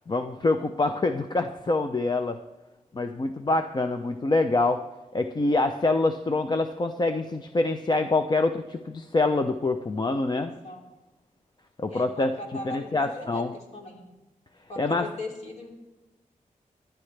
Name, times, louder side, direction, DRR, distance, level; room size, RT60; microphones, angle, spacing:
voice 1, 0.1-2.4 2.9-4.8 5.1-10.5 11.8-12.3 12.6-13.5 14.8-15.1, left 2 dB, 30° left, 7 dB, 0.5 m, -25 dB
voice 2, 10.3-10.8 11.9-14.1 14.7-15.7, left 2 dB, 55° left, -1 dB, 2.8 m, -39 dB
26.0 x 10.5 x 3.3 m, 1.1 s
wide cardioid pair, 150°, 14 cm